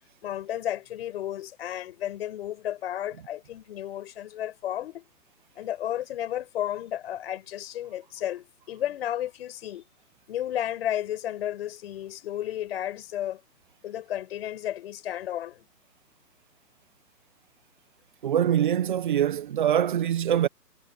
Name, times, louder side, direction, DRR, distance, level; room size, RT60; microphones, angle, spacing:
voice 1, 0.2-5.0 5.6-9.8 10.3-13.4 13.8-15.6, left 12 dB, 35° left, 5.9 m, -33 dB
voice 2, 18.2-20.5, right 10 dB, 30° right, 1.1 m, -24 dB
hypercardioid pair, 160°, 50 cm